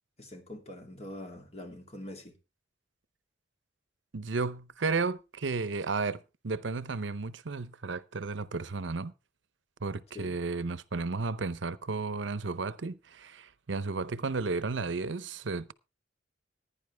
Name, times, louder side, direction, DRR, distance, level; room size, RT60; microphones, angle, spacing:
voice 1, 0.2-2.3 10.1-10.4, left 1 dB, 35° left, 2.6 m, -44 dB
voice 2, 4.1-9.1 9.8-15.7, right 4 dB, 85° right, 0.7 m, -33 dB
15.5 x 10.0 x 3.4 m
head